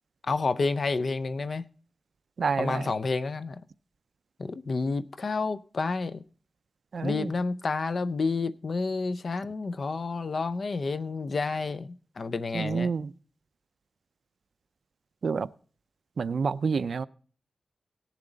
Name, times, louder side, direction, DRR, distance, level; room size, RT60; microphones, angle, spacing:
voice 1, 0.2-1.6 2.6-3.6 4.4-6.2 7.0-12.9, left 3 dB, 50° left, 0.5 m, -30 dB
voice 2, 2.4-2.9 6.9-7.3 12.5-13.1 15.2-15.5 16.2-17.1, right 5 dB, 65° right, 0.4 m, -28 dB
17.5 x 7.2 x 3.9 m
wide cardioid pair, 140°, 0 cm